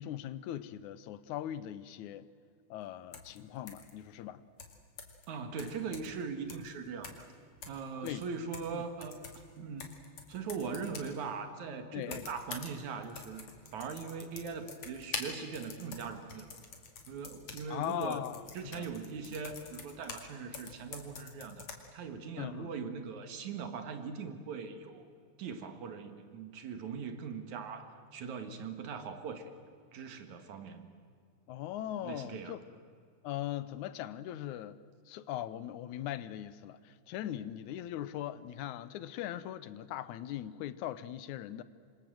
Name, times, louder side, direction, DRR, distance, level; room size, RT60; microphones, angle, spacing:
voice 1, 0.0-2.3 2.7-4.4 8.0-8.2 8.7-8.8 9.6-9.7 11.9-12.3 17.7-18.9 22.4-22.7 31.5-32.6 33.2-34.8 35.1-41.6, left 12 dB, 80° left, 2.2 m, -40 dB
sound 1, 3.1-3.4 3.7-3.9 4.6-5.2 5.6-6.2 6.5-6.7 7.0-7.3 7.6-8.8 9.0-11.2 12.0-12.8 13.0-20.3 20.5-21.8, left 5 dB, 65° left, 3.5 m, -46 dB
voice 2, 5.3-7.3 7.7-9.2 9.6-9.9 10.3-13.4 13.7-16.5 17.1-18.2 18.5-21.7 21.9-25.1 25.4-29.5 29.9-30.9 32.0-32.6, right 5 dB, 75° right, 3.1 m, -40 dB
27.0 x 24.5 x 7.7 m
omnidirectional pair, 3.4 m